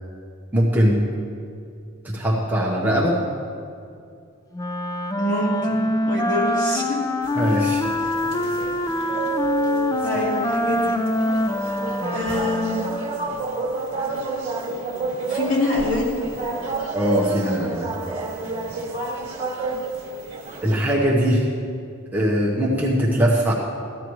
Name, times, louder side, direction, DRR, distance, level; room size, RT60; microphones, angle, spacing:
voice 1, 0.5-1.0 2.0-3.2 7.3-7.8 16.9-17.9 20.6-21.5 22.1-23.5, equal, 10° right, -5 dB, 1.0 m, -20 dB
Wind instrument woodwind instrument, 4.5-13.1, left 1 dB, 15° left, 0.3 m, -25 dB
voice 2, 5.2-7.0 10.0-11.0 12.1-12.8 15.2-16.2, left 2 dB, 40° left, -5 dB, 2.5 m, -25 dB
sound 1, 7.2-20.9, right 3 dB, 30° right, 1.8 m, -30 dB
14.0 x 10.0 x 3.1 m, 2.3 s
head